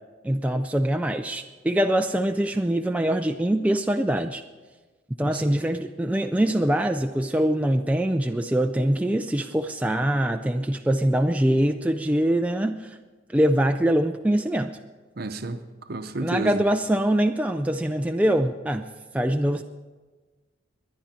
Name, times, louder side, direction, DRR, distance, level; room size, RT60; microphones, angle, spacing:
voice 1, 0.2-4.4 5.2-13.0 13.3-14.8 16.2-18.8 19.1-19.6, right 1 dB, 5° right, 0.3 m, -23 dB
voice 2, 15.2-15.6 15.9-16.6, right 2 dB, 50° right, 0.8 m, -30 dB
20.5 x 10.5 x 4.4 m
head